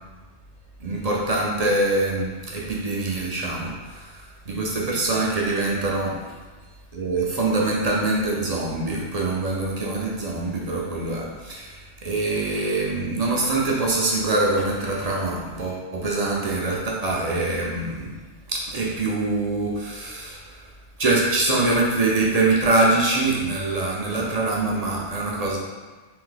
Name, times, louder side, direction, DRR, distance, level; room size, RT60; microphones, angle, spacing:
voice 1, 0.8-6.3 6.9-18.1 18.5-20.7 21.0-25.6, right 2 dB, 45° right, -3 dB, 0.6 m, -24 dB
3.4 x 2.6 x 3.8 m, 1.3 s
omnidirectional pair, 1.2 m